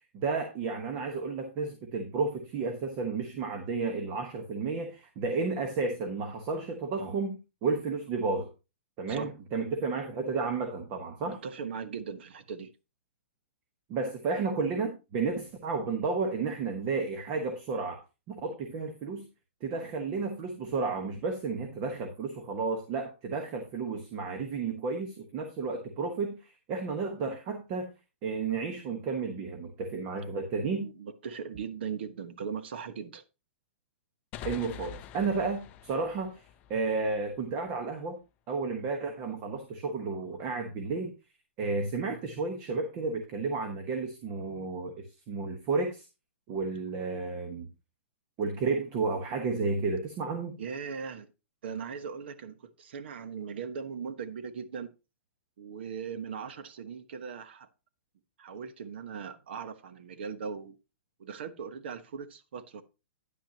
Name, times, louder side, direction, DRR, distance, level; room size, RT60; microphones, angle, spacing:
voice 1, 0.1-8.5 9.0-11.4 13.9-18.0 18.3-19.3 19.6-27.9 28.2-30.9 34.4-36.4 36.7-38.2 38.5-41.1 41.6-44.9 45.3-46.1 46.5-47.7 48.4-50.6, right 4 dB, 25° right, 1.2 m, -32 dB
voice 2, 11.2-12.7 30.8-33.2 48.7-48.8 50.6-51.3 51.6-54.9 55.6-57.7 58.4-60.8 61.2-62.8, right 6 dB, 60° right, 1.2 m, -39 dB
sound 1, 34.3-37.8, left 9 dB, 20° left, 0.6 m, -46 dB
10.0 x 9.1 x 2.9 m
hypercardioid pair, 165°, 7 cm